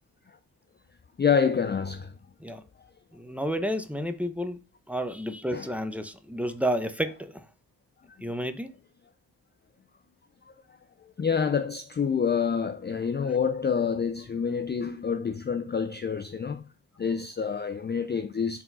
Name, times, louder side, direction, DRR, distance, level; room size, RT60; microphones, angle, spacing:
voice 1, 1.2-2.1 5.5-5.7 11.2-16.7 17.0-18.6, left 6 dB, 25° left, 0.4 m, -27 dB
voice 2, 3.1-4.6 4.9-7.5 8.2-8.7, equal, 5° right, 0.8 m, -31 dB
4.8 x 3.7 x 5.4 m
cardioid pair, 60°, 44 cm